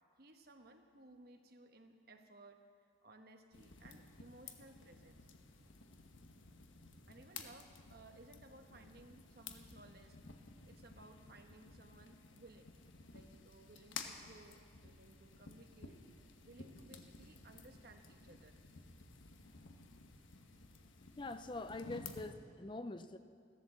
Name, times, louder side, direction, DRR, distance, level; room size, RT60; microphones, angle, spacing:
voice 1, 0.2-2.7 3.0-5.3 7.1-10.2 10.6-12.7 13.1-16.0 16.4-18.6, right 2 dB, 50° right, 5 dB, 1.2 m, -60 dB
sound 1, 3.5-22.2, left 4 dB, 80° left, 1.2 m, -54 dB
voice 2, 21.2-23.2, left 2 dB, 25° left, 10 dB, 0.4 m, -44 dB
16.0 x 12.0 x 7.4 m, 2.2 s
head